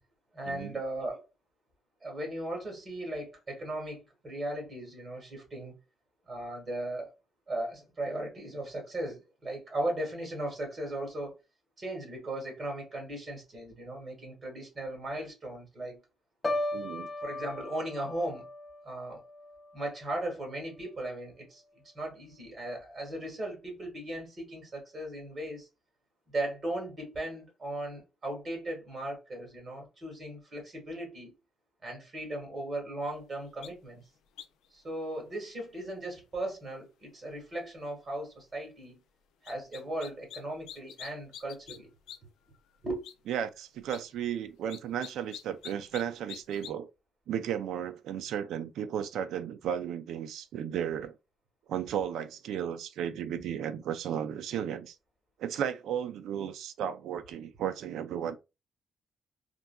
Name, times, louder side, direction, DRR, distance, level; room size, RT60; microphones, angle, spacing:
voice 1, 0.3-1.3 2.0-5.7 6.2-7.1 7.5-11.3 11.8-16.0 17.2-18.5 18.8-19.2 19.7-21.6 21.9-25.7 26.3-31.3 31.8-34.0 34.7-39.0 39.4-41.9 42.8-43.0, right 1 dB, 35° right, 1.5 m, -37 dB
Piano, 16.4-20.4 20.8-21.2, left 2 dB, 20° left, 0.6 m, -37 dB
voice 2, 16.7-17.1 43.3-46.9 47.3-51.2 51.7-55.0 55.4-58.4, right 9 dB, 80° right, 0.3 m, -34 dB
sound 1, 33.6-33.7 34.4-34.7 39.4-40.4 40.7-41.8 42.1-42.2 42.5-42.6 43.0-43.1 43.8-44.0 44.7-46.0 46.3-46.7, left 10 dB, 90° left, 0.4 m, -45 dB
3.7 x 2.2 x 2.2 m
cardioid pair, 125°, 0 cm